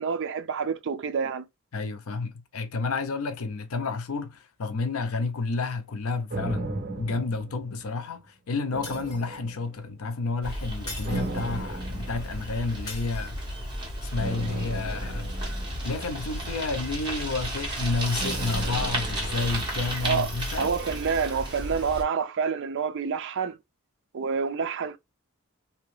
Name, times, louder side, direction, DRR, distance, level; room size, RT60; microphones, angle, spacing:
voice 1, 0.0-1.5 20.0-20.3 20.6-23.6 24.1-25.0, right 6 dB, 55° right, 0.4 m, -28 dB
voice 2, 1.7-6.7 7.0-13.4 14.1-15.3 15.8-20.7, left 3 dB, 70° left, 0.6 m, -30 dB
sound 1, 6.3-8.2 8.7-10.0 11.0-12.8 14.1-16.5 18.1-20.3 20.6-20.7, right 2 dB, 40° right, 0.9 m, -37 dB
Shatter, 8.8-9.6 10.9-11.7 12.9-13.6, left 2 dB, 20° left, 1.6 m, -42 dB
Bicycle, 10.4-22.0, right 1 dB, 20° right, 1.5 m, -33 dB
2.9 x 2.8 x 3.1 m
head